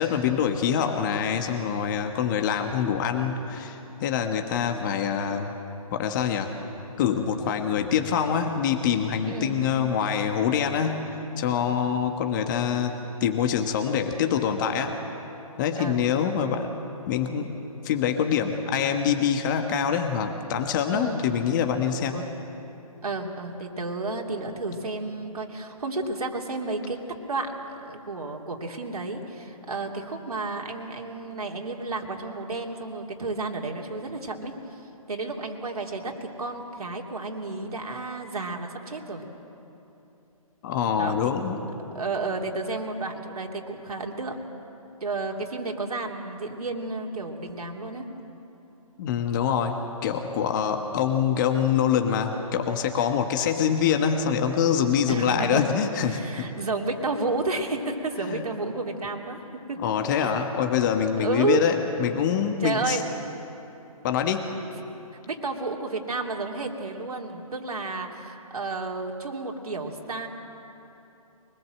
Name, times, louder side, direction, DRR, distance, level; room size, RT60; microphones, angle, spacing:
voice 1, 0.0-5.5 5.9-6.5 7.0-11.1 11.4-12.9 13.2-15.0 15.6-16.7 17.1-17.5 17.8-22.2 40.6-41.6 49.0-56.5 58.3-58.4 59.8-63.0 64.0-64.5, left 8 dB, 30° left, 5 dB, 1.4 m, -25 dB
voice 2, 9.3-9.6 15.7-16.1 20.9-21.2 22.1-22.3 23.0-27.0 27.3-34.8 35.1-39.2 41.0-41.3 41.9-44.4 45.0-48.1 50.6-50.9 55.1-55.7 56.0-59.4 59.7-59.8 60.2-60.3 61.2-61.6 62.6-63.1 65.3-70.3, right 3 dB, 80° right, 1 dB, 3.0 m, -31 dB
24.5 x 20.0 x 7.7 m, 3.0 s
hypercardioid pair, 145°, 19 cm